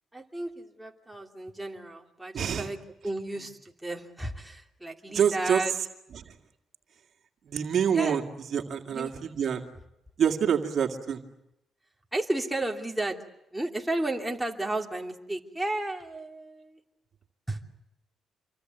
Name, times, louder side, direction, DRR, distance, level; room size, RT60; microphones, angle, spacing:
voice 1, 0.1-2.8 3.0-5.7 7.9-8.2 8.9-9.1 12.1-13.2 13.5-16.8 17.5-17.7, right 2 dB, 5° right, 1 dB, 2.9 m, -33 dB
voice 2, 2.3-2.7 5.1-5.6 6.1-6.3 7.4-8.2 8.5-9.7 10.2-11.2, right 8 dB, 60° right, 4 dB, 2.2 m, -26 dB
27.5 x 24.0 x 8.0 m, 0.86 s
cardioid pair, 90°, 0 cm